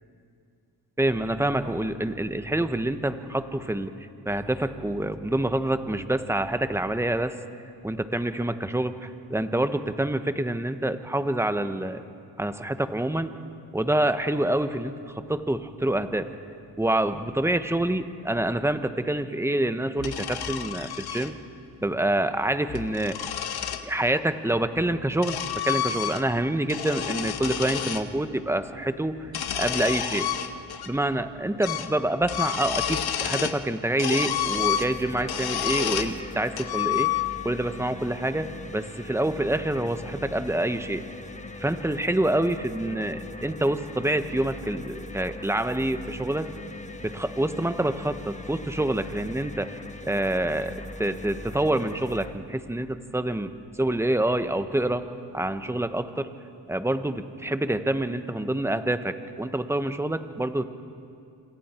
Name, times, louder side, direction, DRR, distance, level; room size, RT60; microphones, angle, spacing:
voice 1, 1.0-3.9 4.2-7.3 7.8-12.0 12.4-13.3 13.7-16.3 16.8-21.4 21.8-23.2 23.8-25.4 25.6-29.2 29.5-30.3 30.9-37.1 37.4-41.0 41.6-46.5 47.0-53.5 53.8-55.1 55.3-56.3 56.7-60.7, right 1 dB, 5° right, 9 dB, 1.2 m, -27 dB
sound 1, 20.0-21.3 22.5-23.9 24.8-26.4 26.7-28.1 29.2-30.9 31.2-31.3 31.6-31.9 32.2-33.6 34.0-36.2 36.6-37.5, left 10 dB, 65° left, 1.3 m, -29 dB
sound 2, 34.5-52.3, left 2 dB, 15° left, 1.3 m, -40 dB
27.5 x 27.0 x 4.6 m, 2.4 s
cardioid pair, 70°, 41 cm